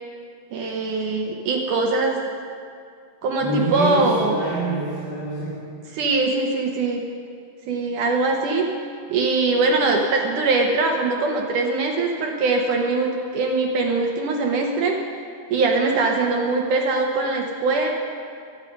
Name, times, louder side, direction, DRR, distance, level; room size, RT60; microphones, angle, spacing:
voice 1, 0.5-2.2 3.2-4.4 5.9-7.0 7.7-8.7 9.1-15.0 15.5-17.9, right 3 dB, 65° right, 1 dB, 2.1 m, -22 dB
voice 2, 3.4-5.6, right 1 dB, 65° left, -10 dB, 5.1 m, -26 dB
24.0 x 9.0 x 5.3 m, 2.3 s
omnidirectional pair, 4.5 m